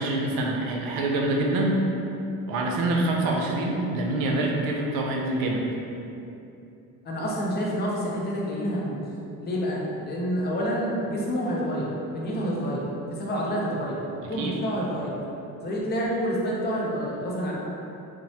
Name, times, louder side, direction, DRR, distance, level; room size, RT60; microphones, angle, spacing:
voice 1, 0.0-1.8 2.5-5.7 14.2-14.6, right 2 dB, 85° right, 0 dB, 0.5 m, -26 dB
voice 2, 7.0-9.1 9.4-12.9 13.2-14.0 14.3-15.2 15.6-17.5, equal, 30° left, -4 dB, 0.4 m, -28 dB
3.0 x 2.0 x 2.7 m, 2.8 s
cardioid pair, 135°, 34 cm